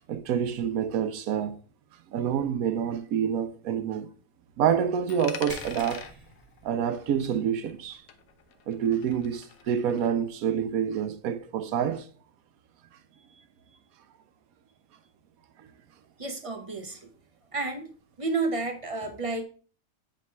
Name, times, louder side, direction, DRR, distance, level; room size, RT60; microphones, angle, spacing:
voice 1, 0.1-1.6 2.1-4.1 4.6-6.1 6.6-8.0 8.7-12.1 15.6-15.7, right 8 dB, 80° right, 1.1 m, -27 dB
Coin (dropping), 5.1-7.8 8.1-10.1, left 8 dB, 85° left, 1.1 m, -45 dB
sound 1, 5.5-7.4 7.7-7.9 8.4-8.5 10.2-10.3, right 1 dB, 15° right, 1.8 m, -46 dB
voice 2, 16.2-17.1 17.5-17.9 18.2-19.4, right 3 dB, 40° right, 0.5 m, -31 dB
7.4 x 3.3 x 4.2 m
omnidirectional pair, 1.5 m